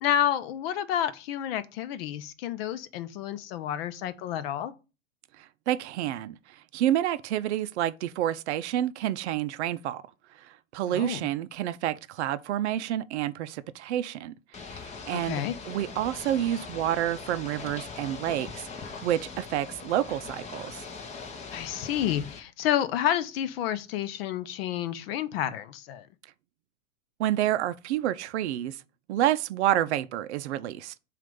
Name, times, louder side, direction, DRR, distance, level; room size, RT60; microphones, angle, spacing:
voice 1, 0.0-4.7 10.9-11.2 15.1-15.5 21.5-26.1, left 11 dB, 50° left, 0.7 m, -30 dB
voice 2, 5.4-10.0 10.4-14.3 14.6-18.7 19.0-20.8 27.2-28.8 29.1-30.9, right 12 dB, 60° right, 0.5 m, -29 dB
Ocean / Boat Water vehicle, 14.5-22.4, left 5 dB, 15° left, 0.7 m, -41 dB
7.3 x 2.5 x 5.3 m
hypercardioid pair, 115°, 39 cm